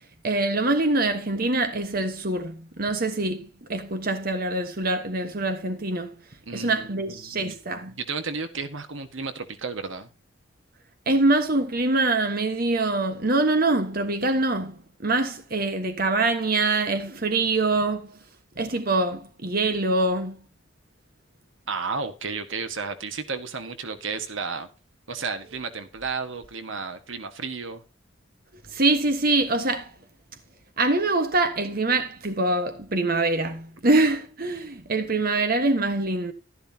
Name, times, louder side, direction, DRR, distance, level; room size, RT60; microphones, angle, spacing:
voice 1, 0.2-6.1 6.5-8.0 11.1-18.2 18.6-20.4 28.7-29.9 30.8-36.3, right 2 dB, 45° right, 1.3 m, -24 dB
voice 2, 6.5-7.4 8.0-10.1 21.7-24.7 25.1-27.8, right 4 dB, 75° right, 1.5 m, -32 dB
12.5 x 11.5 x 2.8 m
head